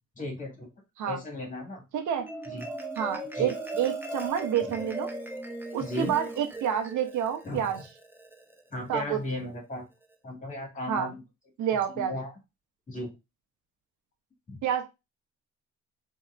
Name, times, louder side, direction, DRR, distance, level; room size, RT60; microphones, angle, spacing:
voice 1, 0.2-0.7 1.1-1.8 2.5-2.7 3.3-3.5 5.8-6.1 7.4-7.7 8.7-9.9 10.2-11.2 11.9-12.3 12.9-13.1 14.5-14.6, left 2 dB, 25° left, 0 dB, 1.9 m, -35 dB
voice 2, 1.9-2.3 3.0-5.1 5.7-7.8 8.9-9.2 10.9-11.1 11.6-12.1 14.6-14.9, right 9 dB, 75° right, 6 dB, 0.7 m, -28 dB
Marimba xylophone, 2.0-8.6, right 2 dB, 5° right, 0.7 m, -38 dB
4.1 x 2.8 x 2.4 m, 0.24 s
cardioid pair, 90°, 30 cm